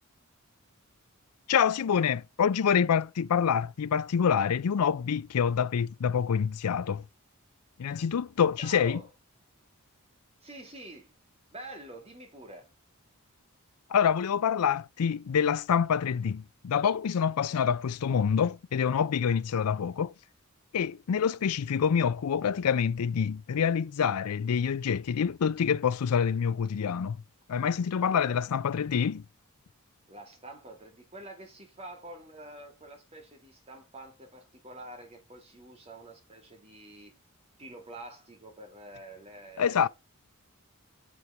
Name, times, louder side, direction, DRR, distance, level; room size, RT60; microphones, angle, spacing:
voice 1, 1.5-7.0 7.8-9.0 13.9-20.1 20.7-27.2 27.5-29.2 39.6-39.9, left 7 dB, 85° left, 0.4 m, -26 dB
voice 2, 8.6-9.1 10.4-11.1 11.5-12.7 28.0-28.4 30.1-37.1 37.6-39.9, right 1 dB, 25° right, 2.5 m, -47 dB
7.3 x 6.4 x 5.7 m
head